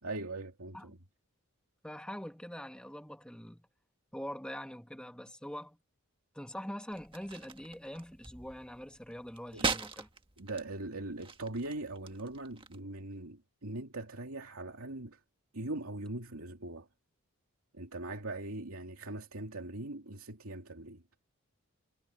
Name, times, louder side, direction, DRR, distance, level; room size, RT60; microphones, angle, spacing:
voice 1, 0.0-1.0 9.5-9.7 10.4-15.2 15.5-16.9 17.7-21.0, right 2 dB, 75° right, 2.6 m, -41 dB
voice 2, 1.8-3.7 4.1-5.8 6.3-10.1, equal, 5° left, 1.7 m, -43 dB
sound 1, 6.9-12.8, right 4 dB, 25° right, 1.6 m, -41 dB
head